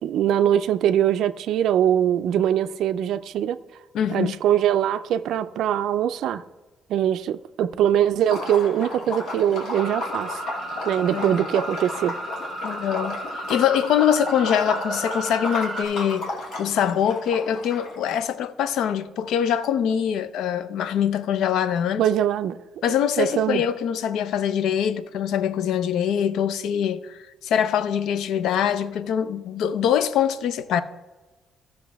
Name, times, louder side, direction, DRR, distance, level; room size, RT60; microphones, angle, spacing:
voice 1, 0.0-3.6 4.1-6.4 6.9-10.4 10.9-12.1 22.0-22.6 23.2-23.6, right 10 dB, 70° right, 0.4 m, -22 dB
voice 2, 3.9-4.4 11.1-11.4 12.6-13.2 13.5-22.0 22.8-30.8, left 9 dB, 75° left, 0.5 m, -23 dB
Liquid, 8.2-18.1, left 2 dB, 55° left, 2.4 m, -33 dB
sound 1, 9.7-15.8, right 1 dB, 10° right, 1.9 m, -34 dB
15.0 x 6.4 x 3.5 m
cardioid pair, 175°, 0 cm